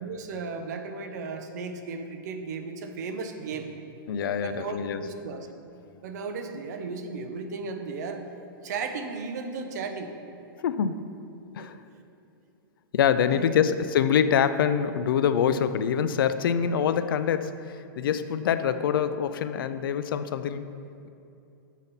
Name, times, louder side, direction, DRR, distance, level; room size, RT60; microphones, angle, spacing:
voice 1, 0.0-3.7 4.4-5.5 6.0-8.3 8.6-10.1 11.6-11.7 13.3-13.6, right 4 dB, 55° right, 6 dB, 0.6 m, -35 dB
voice 2, 4.1-5.0 10.6-11.1 11.5-11.8 12.9-20.7, left 8 dB, 85° left, 12 dB, 0.4 m, -25 dB
7.2 x 4.1 x 5.3 m, 2.7 s
supercardioid pair, 170°, 11 cm